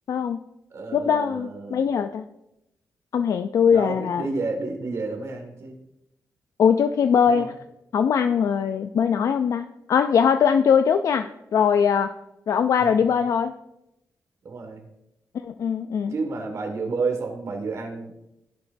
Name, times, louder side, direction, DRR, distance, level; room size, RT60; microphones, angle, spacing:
voice 1, 0.1-0.4 0.9-2.2 3.1-4.3 6.6-7.5 7.9-12.1 12.5-13.5 15.4-16.1, left 7 dB, 60° left, 9 dB, 0.3 m, -21 dB
voice 2, 0.7-1.8 3.7-5.8 7.3-7.5 12.8-13.0 14.4-14.9 16.1-18.1, right 3 dB, 50° right, 3 dB, 1.8 m, -30 dB
16.0 x 6.1 x 2.6 m, 0.88 s
wide cardioid pair, 155°, 6 cm